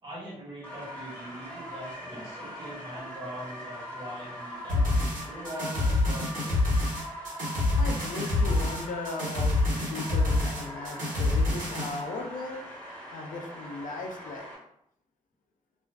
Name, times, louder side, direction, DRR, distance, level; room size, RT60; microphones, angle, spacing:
voice 1, 0.0-6.6, right 1 dB, 35° right, -6 dB, 1.4 m, -42 dB
sound 1, 0.6-14.6, equal, 15° left, 1.2 m, -41 dB
sound 2, 4.7-12.0, left 2 dB, 70° right, 1.2 m, -27 dB
voice 2, 7.5-14.5, left 3 dB, 70° left, 3 dB, 0.4 m, -38 dB
2.4 x 2.2 x 2.3 m, 0.73 s
cardioid pair, 60°, 14 cm